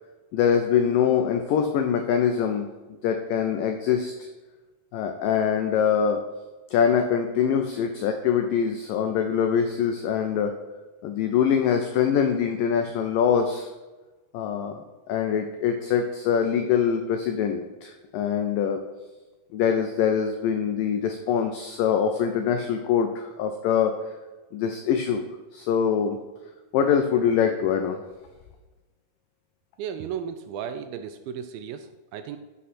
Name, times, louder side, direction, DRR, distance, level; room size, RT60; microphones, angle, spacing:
voice 1, 0.3-2.7 3.0-4.1 4.9-6.2 6.7-10.6 11.0-13.7 14.3-14.8 15.1-18.8 19.5-24.0 24.5-25.3 25.5-26.2 26.7-28.0, left 7 dB, 85° left, 6 dB, 1.9 m, -24 dB
voice 2, 29.8-32.4, right 8 dB, 85° right, 9 dB, 2.1 m, -35 dB
11.0 x 6.3 x 4.3 m, 1.2 s
omnidirectional pair, 4.6 m